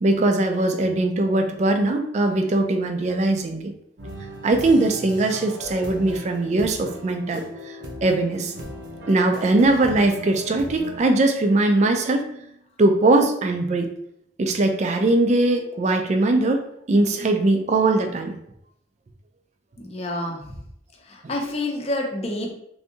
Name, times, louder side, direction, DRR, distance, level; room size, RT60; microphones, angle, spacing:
voice 1, 0.0-3.7 4.4-8.5 9.1-12.4 12.8-13.9 14.4-18.4, right 2 dB, 40° right, 5 dB, 0.4 m, -21 dB
sound 1, 4.0-11.0, equal, 80° right, 0.7 m, -38 dB
voice 2, 19.8-20.4 21.1-22.5, left 1 dB, 35° left, 1 dB, 0.6 m, -28 dB
3.4 x 2.6 x 2.7 m, 0.75 s
head